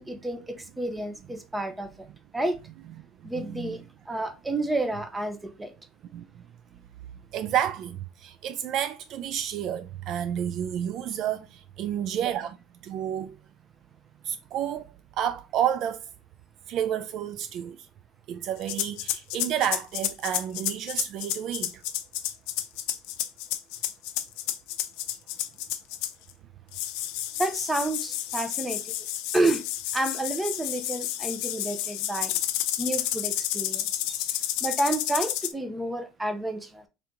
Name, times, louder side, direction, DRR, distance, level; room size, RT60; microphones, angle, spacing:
voice 1, 0.0-1.9 2.3-2.6 3.2-5.7 27.4-28.9 29.3-29.6 29.9-32.3 32.8-36.9, right 2 dB, 10° right, 0.7 m, -30 dB
voice 2, 3.3-3.8 6.1-6.2 7.3-12.6 12.8-13.4 14.2-14.8 15.2-16.0 16.7-17.8 18.3-21.7 33.7-33.8 34.2-34.3, right 10 dB, 50° right, 0.3 m, -30 dB
sound 1, 18.6-26.3 26.7-35.5, left 13 dB, 75° left, 0.5 m, -31 dB
3.4 x 2.8 x 3.7 m
cardioid pair, 125°, 0 cm